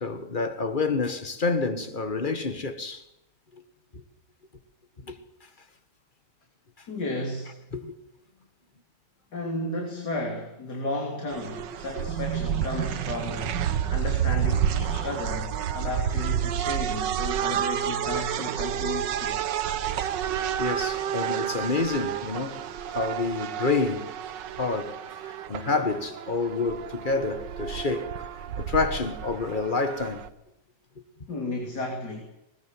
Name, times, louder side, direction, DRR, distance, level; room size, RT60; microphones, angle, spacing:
voice 1, 0.0-3.0 3.5-3.6 3.9-4.0 5.0-5.2 7.7-8.0 20.6-24.1 24.5-24.9 25.2-28.3 28.6-30.3, left 4 dB, 30° left, 1.6 m, -28 dB
voice 2, 6.9-7.5 9.3-19.4 31.3-32.2, left 1 dB, 65° left, 3.7 m, -33 dB
sound 1, 11.3-30.3, right 9 dB, 85° right, 1.6 m, -30 dB
20.5 x 20.0 x 7.7 m
omnidirectional pair, 1.9 m